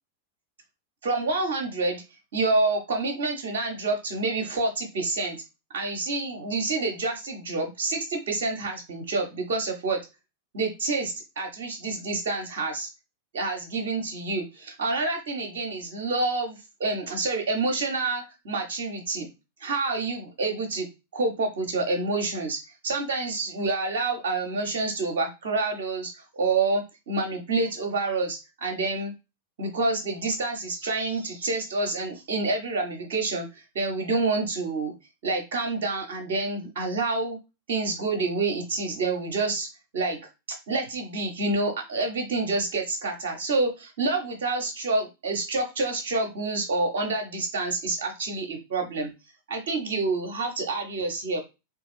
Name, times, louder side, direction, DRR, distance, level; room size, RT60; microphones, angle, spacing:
voice 1, 1.0-2.0 2.3-5.4 5.7-10.0 10.5-12.9 13.3-19.3 19.6-20.9 21.1-29.1 29.6-34.9 35.2-37.4 37.7-39.7 39.9-40.2 40.7-49.1 49.5-51.4, right 3 dB, 55° right, 4 dB, 0.6 m, -28 dB
3.0 x 2.3 x 3.1 m, 0.26 s
figure-of-eight pair, 90°, 0 cm